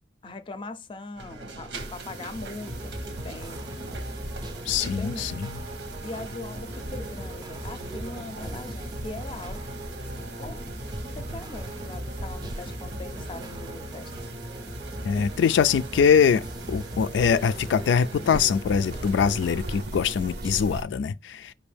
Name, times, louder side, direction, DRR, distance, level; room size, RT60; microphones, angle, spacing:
voice 1, 0.2-3.6 5.0-5.3 6.0-9.6 10.4-10.6 11.0-14.1, left 2 dB, 30° left, 0.5 m, -40 dB
sound 1, 1.1-19.8, right 1 dB, 90° right, 1.2 m, -42 dB
sound 2, 1.7-20.8, right 2 dB, 65° right, 0.6 m, -42 dB
sound 3, 2.6-20.6, equal, 25° right, 0.5 m, -39 dB
voice 2, 4.7-5.5 15.0-16.4 16.7-21.5, left 7 dB, 90° left, 0.3 m, -23 dB
5.3 x 2.6 x 3.3 m
head